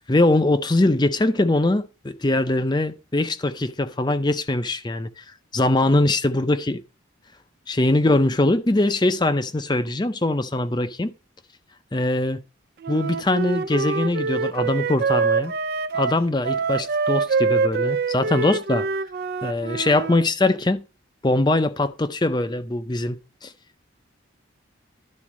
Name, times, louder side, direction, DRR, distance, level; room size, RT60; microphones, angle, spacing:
voice 1, 0.1-6.8 7.7-11.1 11.9-12.4 12.9-15.5 15.9-18.9 19.4-20.8 21.2-23.5, left 2 dB, 20° left, 0.5 m, -22 dB
Wind instrument woodwind instrument, 12.8-20.3, right 4 dB, 50° right, 0.4 m, -25 dB
11.5 x 4.1 x 6.0 m
head